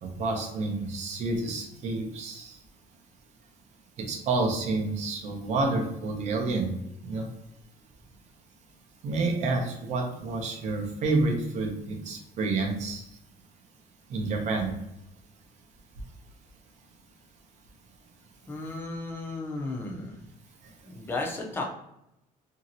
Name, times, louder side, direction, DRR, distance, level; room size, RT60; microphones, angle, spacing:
voice 1, 0.0-2.5 4.0-6.7 7.1-7.3 9.0-13.0 14.1-14.7, right 3 dB, 45° right, 2 dB, 0.6 m, -29 dB
voice 2, 18.5-20.3 20.8-21.6, left 2 dB, 15° left, 0 dB, 0.5 m, -34 dB
2.9 x 2.7 x 2.6 m, 0.83 s
cardioid pair, 170°, 16 cm